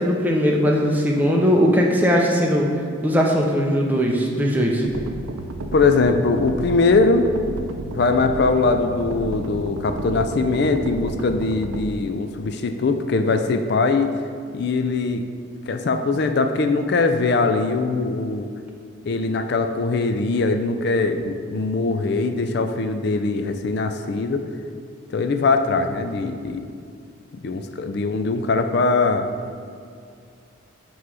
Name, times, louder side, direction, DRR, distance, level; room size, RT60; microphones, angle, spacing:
voice 1, 0.0-2.7 3.0-4.9, equal, 10° right, -1 dB, 0.6 m, -19 dB
sound 1, 4.8-11.8, right 2 dB, 90° right, 0.4 m, -32 dB
voice 2, 5.7-7.3 7.8-14.1 14.5-15.2 15.7-18.5 19.1-24.5 25.1-26.7 27.3-29.3, left 3 dB, 50° left, 7 dB, 0.4 m, -21 dB
8.0 x 3.1 x 4.7 m, 2.4 s
head